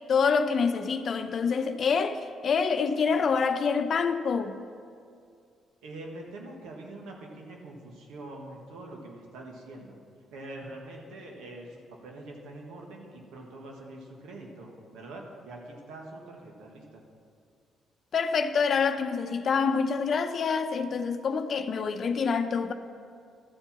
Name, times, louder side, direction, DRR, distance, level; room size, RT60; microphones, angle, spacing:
voice 1, 0.1-4.6 18.1-22.7, left 5 dB, 55° left, 0.6 m, -26 dB
voice 2, 5.8-10.0 10.3-17.0, right 2 dB, 80° right, 1.5 m, -44 dB
13.0 x 4.5 x 7.3 m
supercardioid pair, 65°, 0 cm